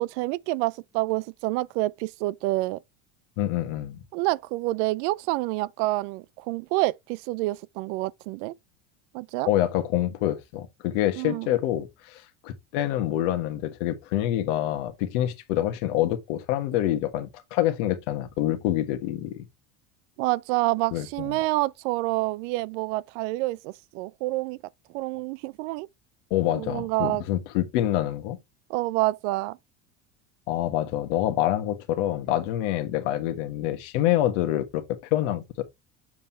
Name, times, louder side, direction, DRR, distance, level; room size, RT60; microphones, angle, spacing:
voice 1, 0.0-2.8 4.1-8.5 9.1-9.5 11.2-11.5 20.2-24.6 24.9-25.9 26.5-27.2 28.7-29.6, right 19 dB, 80° right, 0.5 m, -28 dB
voice 2, 3.4-4.0 9.5-19.5 20.9-21.4 26.3-28.4 30.5-34.8 35.1-35.6, left 13 dB, 85° left, 1.4 m, -26 dB
7.4 x 3.4 x 4.3 m
cardioid pair, 155°, 35 cm